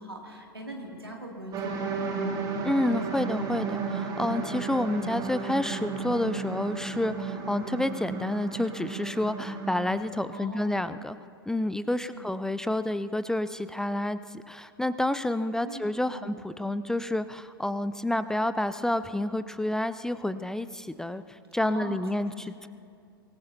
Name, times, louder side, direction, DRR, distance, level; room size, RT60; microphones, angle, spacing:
voice 1, 0.0-2.0 10.3-10.9 12.0-12.3 15.6-16.3 21.6-22.0, right 1 dB, 90° right, 0 dB, 2.6 m, -41 dB
sound 1, 1.5-9.9, right 5 dB, 30° right, 2.1 m, -33 dB
voice 2, 2.6-11.2 11.5-22.7, left 1 dB, 5° left, 13 dB, 0.4 m, -29 dB
24.5 x 19.0 x 2.8 m, 2.3 s
figure-of-eight pair, 90°, 12 cm